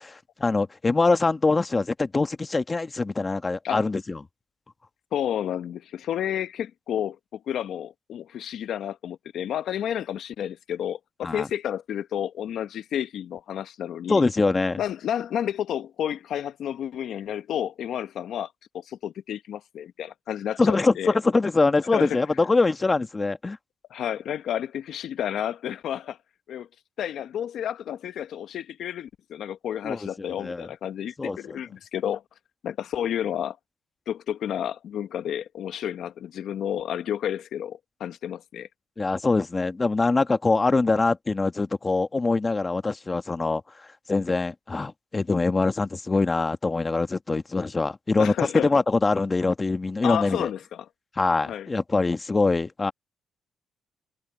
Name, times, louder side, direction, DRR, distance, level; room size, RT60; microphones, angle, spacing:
voice 1, 0.0-4.2 11.2-11.5 14.1-14.8 20.6-23.6 29.8-30.7 31.2-31.6 39.0-43.6 44.1-48.3 48.6-50.5 51.2-52.9, left 3 dB, 25° left, 1.4 m, -24 dB
voice 2, 5.1-14.2 14.8-21.2 21.9-22.2 23.9-26.2 26.5-26.7 27.0-32.2 32.6-33.6 34.1-38.7 48.2-48.7 50.0-50.9 51.4-51.7, left 10 dB, 70° left, 0.9 m, -31 dB
cardioid pair, 90°, 0 cm